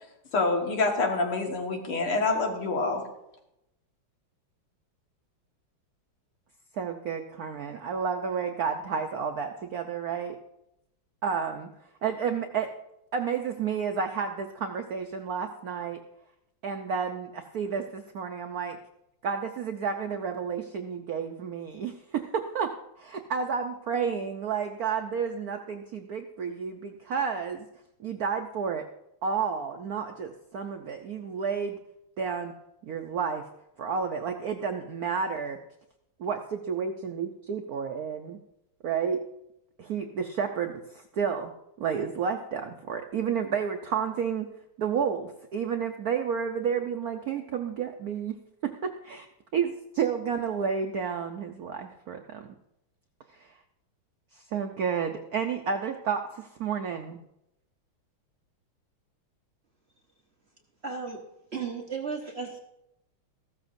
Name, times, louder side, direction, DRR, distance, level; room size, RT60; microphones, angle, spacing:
voice 1, 0.3-3.0, left 3 dB, 80° left, 2 dB, 2.5 m, -26 dB
voice 2, 6.7-10.4 11.2-11.7 12.0-12.7 13.1-16.0 16.6-18.8 19.2-27.6 28.0-28.9 29.2-31.8 32.2-32.5 32.8-33.5 33.8-35.6 36.2-38.4 38.8-39.2 39.8-41.5 41.8-44.5 44.8-49.3 49.5-52.5 53.3-53.5 54.3-57.2, right 6 dB, 70° right, 5 dB, 0.8 m, -31 dB
voice 3, 60.8-61.2 61.5-62.6, right 5 dB, 40° right, 0 dB, 1.0 m, -34 dB
15.0 x 13.0 x 2.6 m, 0.85 s
omnidirectional pair, 2.3 m